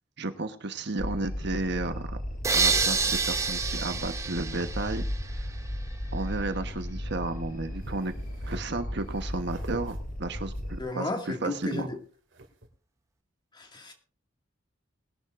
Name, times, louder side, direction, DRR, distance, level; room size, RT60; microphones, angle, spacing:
voice 1, 0.2-2.2 2.5-5.0 5.3-5.5 6.1-8.1 8.5-11.9, right 2 dB, 60° right, 8 dB, 1.2 m, -33 dB
sound 1, 1.0-10.8, equal, 50° left, 2.9 m, -35 dB
sound 2, 2.4-5.5, right 4 dB, 15° right, 0.8 m, -28 dB
sound 3, 7.8-8.6 9.1-10.0 10.5-12.0 12.3-12.7, right 1 dB, 75° right, 2.5 m, -47 dB
voice 2, 10.8-12.0 13.5-13.9, left 2 dB, 25° left, 3 dB, 2.2 m, -33 dB
20.5 x 11.5 x 2.6 m, 0.40 s
head